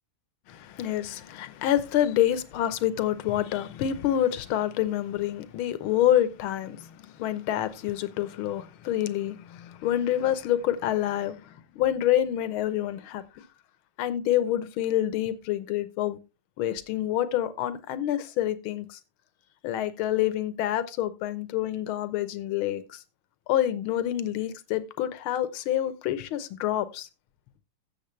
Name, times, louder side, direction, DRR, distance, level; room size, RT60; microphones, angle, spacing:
voice 1, 0.5-13.4 14.0-16.2 16.6-19.0 19.6-23.0 23.5-27.1, left 12 dB, 75° left, 1.7 m, -27 dB
13.5 x 7.5 x 3.2 m
omnidirectional pair, 2.4 m